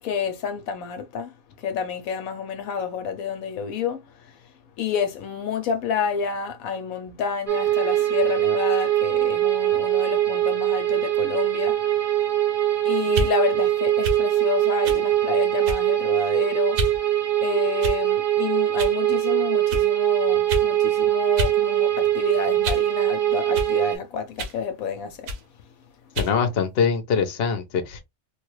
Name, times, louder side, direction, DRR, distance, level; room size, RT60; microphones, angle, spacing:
voice 1, 0.0-4.4 4.8-12.3 12.8-17.2 17.4-25.3, left 6 dB, 75° left, 1.0 m, -29 dB
sound 1, 7.5-24.0, right 13 dB, 40° right, 0.9 m, -22 dB
Close Combat Thin Stick Whistle Whiz Whoosh through Air, 13.1-13.3 14.0-14.2 14.8-15.0 15.6-16.0 16.7-17.0 17.8-18.2 18.8-19.0 19.7-19.9 20.5-20.7 21.4-21.6 21.9-22.9 23.5-23.7 24.4-24.6 25.3-25.5 26.1-26.4, right 1 dB, 85° right, 1.3 m, -28 dB
voice 2, 26.2-28.0, left 6 dB, 50° left, 0.8 m, -23 dB
3.5 x 2.3 x 3.1 m
omnidirectional pair, 1.6 m